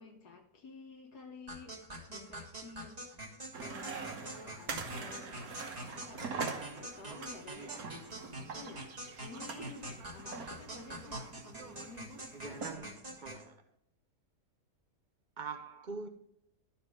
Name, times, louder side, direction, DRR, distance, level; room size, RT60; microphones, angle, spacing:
voice 1, 0.0-1.8 2.1-5.6 5.9-7.8 8.4-8.9 9.2-13.2 16.0-16.1, left 3 dB, 75° left, 1.6 m, -52 dB
sound 1, 1.5-13.4, right 1 dB, 25° right, 1.6 m, -45 dB
sound 2, 3.5-12.7, right 5 dB, 70° right, 1.6 m, -44 dB
voice 2, 12.3-13.0 13.2-13.6 15.4-16.1, right 4 dB, 55° right, 0.5 m, -43 dB
11.5 x 4.3 x 5.1 m
omnidirectional pair, 1.7 m